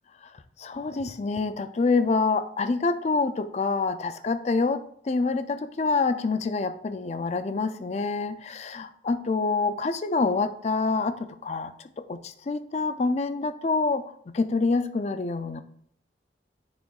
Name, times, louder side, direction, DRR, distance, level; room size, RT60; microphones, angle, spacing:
voice 1, 0.6-15.6, left 3 dB, 40° left, 11 dB, 0.4 m, -27 dB
10.0 x 4.9 x 2.4 m, 0.64 s
head